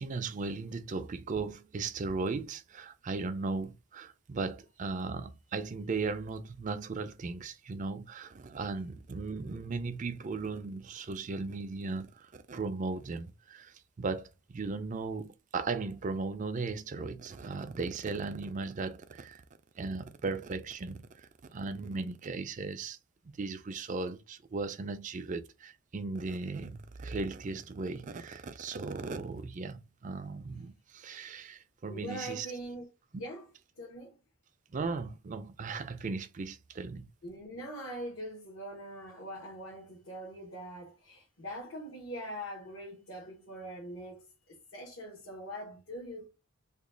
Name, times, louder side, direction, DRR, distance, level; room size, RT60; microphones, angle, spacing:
voice 1, 0.0-19.4 19.8-23.0 23.4-32.5 33.1-33.2 34.7-37.1, right 4 dB, 35° right, 0.4 m, -37 dB
voice 2, 31.9-34.1 37.2-46.3, equal, 70° left, 1.2 m, -43 dB
3.0 x 2.3 x 3.7 m
head